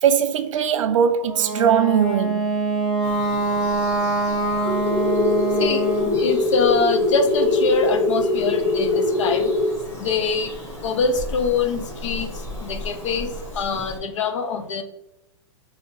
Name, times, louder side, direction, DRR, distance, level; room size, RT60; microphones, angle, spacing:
voice 1, 0.0-2.5, right 8 dB, 75° right, 0.4 m, -20 dB
Wind instrument woodwind instrument, 1.2-6.2, right 3 dB, ahead, 0.9 m, -24 dB
Bird vocalization bird call bird song, 3.0-14.0, left 1 dB, 15° left, 1.2 m, -37 dB
sound 1, 4.7-9.7, left 3 dB, 50° left, 1.0 m, -22 dB
voice 2, 5.6-9.4 10.0-10.5 10.8-12.3 12.6-13.3 13.5-14.8, left 4 dB, 70° left, 0.7 m, -24 dB
3.1 x 2.7 x 3.0 m
hypercardioid pair, 125°, 16 cm